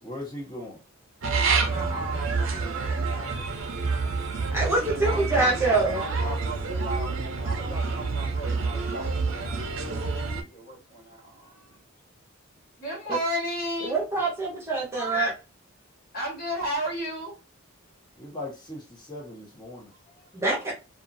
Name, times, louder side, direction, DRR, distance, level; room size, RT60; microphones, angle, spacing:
voice 1, 0.0-0.8 18.2-19.9, left 1 dB, 20° left, 1.0 m, -38 dB
sound 1, 1.2-10.4, right 4 dB, 70° right, 0.7 m, -28 dB
voice 2, 1.6-3.4 5.0-9.4 9.8-11.8 12.8-14.0 16.1-17.3 20.1-20.3, right 1 dB, 45° left, 1.5 m, -35 dB
voice 3, 4.5-6.0 13.8-15.3 20.3-20.7, right 3 dB, 15° right, 0.9 m, -25 dB
2.6 x 2.5 x 2.6 m
head